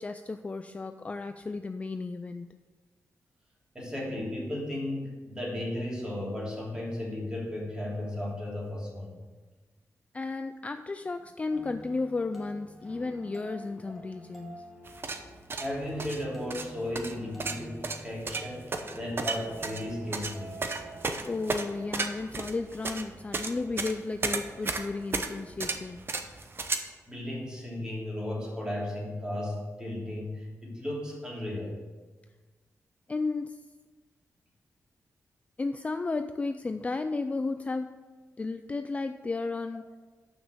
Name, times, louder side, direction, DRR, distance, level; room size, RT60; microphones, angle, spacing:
voice 1, 0.0-2.6 10.1-14.7 21.2-26.1 33.1-33.6 35.6-38.0 38.4-39.9, left 3 dB, 25° left, 8 dB, 0.3 m, -33 dB
voice 2, 3.7-9.2 15.5-20.5 27.1-31.7, left 1 dB, 15° right, -4 dB, 2.9 m, -35 dB
sound 1, 11.5-22.5, right 2 dB, ahead, 1.9 m, -48 dB
sound 2, 14.9-26.8, right 3 dB, 40° right, 0.8 m, -34 dB
7.0 x 6.1 x 6.5 m, 1.3 s
wide cardioid pair, 115°, 6 cm